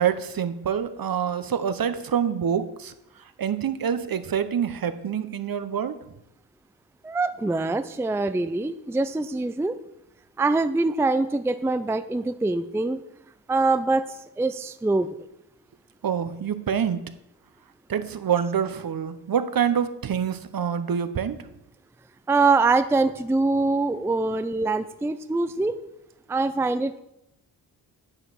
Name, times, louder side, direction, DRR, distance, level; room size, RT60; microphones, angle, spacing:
voice 1, 0.0-2.9 3.4-6.0 16.0-17.0 17.9-21.5, right 8 dB, 50° right, 11 dB, 0.9 m, -26 dB
voice 2, 7.0-9.8 10.4-13.0 13.5-14.1 14.4-15.1 22.3-25.8 26.3-27.0, right 3 dB, 5° right, 11 dB, 0.5 m, -24 dB
9.9 x 5.0 x 5.8 m, 0.85 s
supercardioid pair, 55°, 44 cm